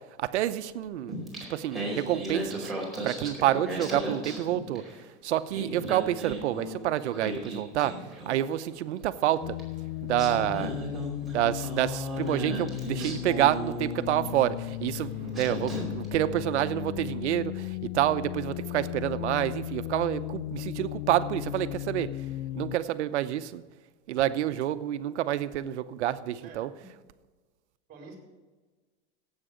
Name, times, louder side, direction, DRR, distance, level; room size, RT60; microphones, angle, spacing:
voice 1, 0.2-1.1 1.5-2.7 3.0-4.8 5.2-8.0 8.3-9.6 10.0-10.7 11.3-22.1 22.5-23.6 24.1-26.7, right 12 dB, 90° right, 13 dB, 0.8 m, -28 dB
Singing, 1.1-5.0 5.3-8.6 9.6-9.7 10.1-14.3 14.9-15.1 15.3-16.1, right 1 dB, ahead, 4.6 m, -36 dB
sound 1, 9.4-22.8, left 17 dB, 65° left, 0.5 m, -36 dB
voice 2, 15.1-15.5 26.4-26.9 27.9-28.2, right 2 dB, 25° right, 0 dB, 4.2 m, -47 dB
16.5 x 8.2 x 5.0 m, 1.3 s
supercardioid pair, 135°, 33 cm